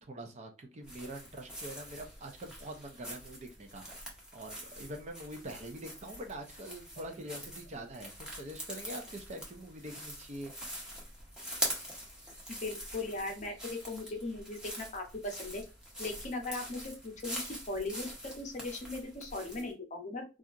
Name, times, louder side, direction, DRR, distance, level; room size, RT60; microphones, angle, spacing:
voice 1, 0.1-10.5, right 1 dB, 35° right, 4 dB, 0.5 m, -44 dB
sound 1, 0.8-19.7, equal, 5° right, 0.7 m, -44 dB
voice 2, 12.5-15.6 16.0-20.4, left 2 dB, 40° left, 2 dB, 0.7 m, -39 dB
2.8 x 2.3 x 2.4 m, 0.29 s
head